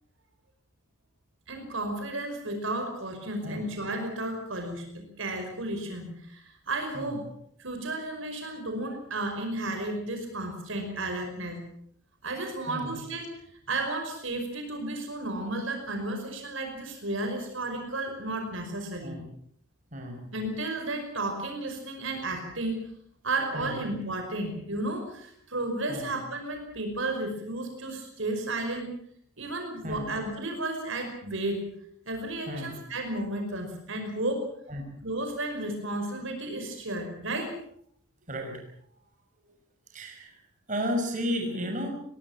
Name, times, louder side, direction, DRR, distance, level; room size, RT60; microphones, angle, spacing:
voice 1, 1.5-7.3 7.6-11.6 12.2-13.3 13.7-19.2 20.3-22.9 23.2-28.9 29.4-31.6 32.1-34.5 35.0-37.5, right 2 dB, 65° right, 4 dB, 5.4 m, -33 dB
voice 2, 38.3-38.6 39.9-40.4 40.7-41.9, equal, 35° right, 2 dB, 6.0 m, -33 dB
23.5 x 19.5 x 7.4 m, 0.65 s
head